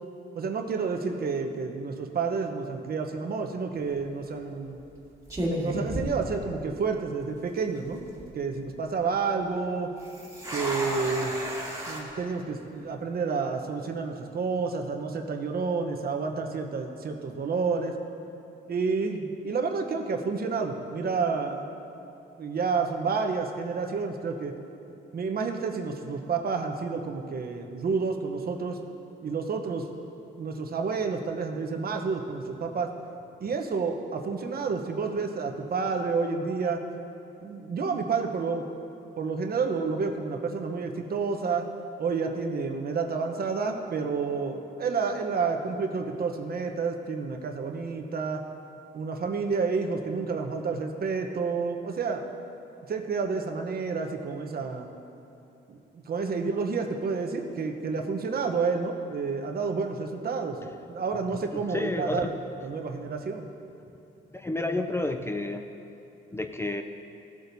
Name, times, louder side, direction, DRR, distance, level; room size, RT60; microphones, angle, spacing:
voice 1, 0.3-4.8 5.6-8.1 8.3-9.9 10.5-11.4 11.9-17.9 18.7-21.8 22.4-24.5 25.1-28.8 29.2-29.9 30.4-32.9 33.4-36.8 37.4-38.7 39.2-41.7 42.0-48.4 48.9-52.2 52.9-54.9 55.7-60.6 60.9-63.5, right 4 dB, 50° right, 4 dB, 1.0 m, -30 dB
sound 1, 3.7-4.0 4.8-5.0 5.3-6.9 7.2-7.3 7.9-8.3 10.0-12.0, equal, 15° right, 2.1 m, -33 dB
voice 2, 61.5-62.2 64.3-65.6 66.3-66.8, left 2 dB, 15° left, 6 dB, 0.4 m, -30 dB
16.0 x 8.2 x 2.7 m, 2.8 s
cardioid pair, 90°, 20 cm